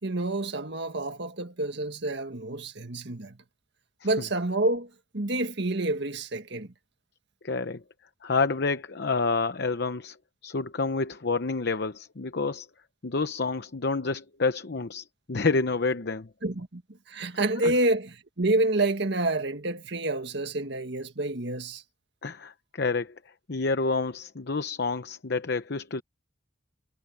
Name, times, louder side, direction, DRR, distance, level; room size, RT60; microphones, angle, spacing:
voice 1, 0.0-3.4 4.0-6.7 16.4-16.8 17.1-21.8, right 2 dB, 60° right, 1.8 m, -28 dB
voice 2, 7.4-7.8 8.2-10.2 10.4-12.7 13.0-16.3 17.6-17.7 22.2-23.1 23.5-26.0, left 4 dB, 55° left, 0.8 m, -28 dB
head